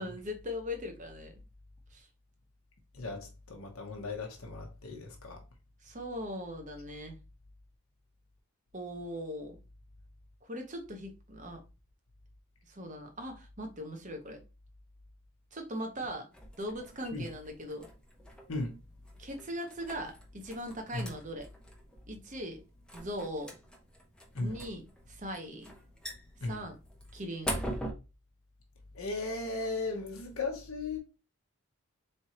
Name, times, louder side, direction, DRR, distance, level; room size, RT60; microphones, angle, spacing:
voice 1, 0.0-1.4 1.9-2.1 5.8-7.2 8.7-9.6 10.4-11.6 12.7-14.4 15.5-16.3 16.6-17.9 19.2-21.5 22.1-22.6 22.9-23.5 24.4-25.7 26.4-26.8 27.1-27.5, equal, 35° right, 0.9 m, -40 dB
voice 2, 3.0-5.4 17.1-17.3 18.5-18.8 20.9-21.0 24.3-24.6 26.4-26.6 28.9-31.0, left 3 dB, 70° left, 0.9 m, -36 dB
sound 1, 16.3-27.9, equal, 5° left, 0.7 m, -44 dB
4.3 x 3.3 x 2.9 m
head